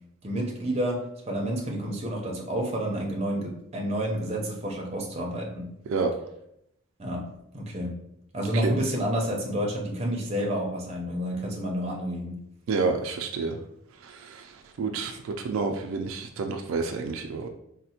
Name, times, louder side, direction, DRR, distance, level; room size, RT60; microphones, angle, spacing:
voice 1, 0.2-5.7 7.0-8.0 8.3-12.4, equal, 30° right, -1 dB, 0.6 m, -29 dB
voice 2, 12.7-13.6 14.8-15.2 15.4-17.5, right 4 dB, 80° right, 4 dB, 0.3 m, -28 dB
4.0 x 2.1 x 2.8 m, 0.78 s
head